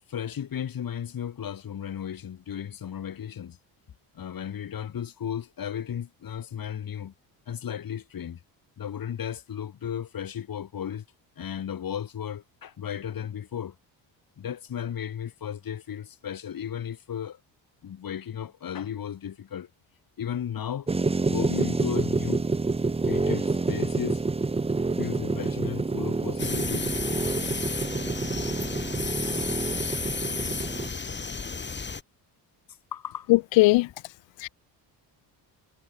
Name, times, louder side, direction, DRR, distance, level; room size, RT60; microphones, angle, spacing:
voice 1, 0.1-3.6 4.1-7.1 7.5-8.4 8.8-11.0 11.4-13.8 14.4-17.4 17.8-19.7 20.2-20.9 21.3-22.4 23.1-24.2 25.0-27.0 32.9-33.3, left 9 dB, 50° left, 7.4 m, -34 dB
sound 1, 20.9-30.9, right 3 dB, 15° right, 1.1 m, -28 dB
sound 2, 26.4-32.0, left 4 dB, 25° left, 4.6 m, -33 dB
voice 2, 33.3-33.9 34.4-34.5, left 21 dB, 85° left, 0.7 m, -19 dB
cardioid pair, 110°, 44 cm